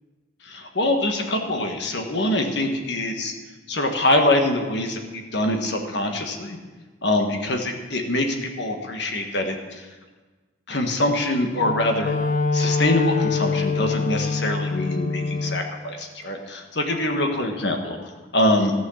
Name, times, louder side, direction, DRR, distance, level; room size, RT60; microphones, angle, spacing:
voice 1, 0.4-3.3 3.7-6.6 7.0-9.9 10.7-12.1 12.5-18.0 18.3-18.7, left 1 dB, 60° left, 3 dB, 1.5 m, -24 dB
Wind instrument woodwind instrument, 11.6-15.7, left 4 dB, 40° left, 0.6 m, -25 dB
15.0 x 6.3 x 7.1 m, 1.3 s
head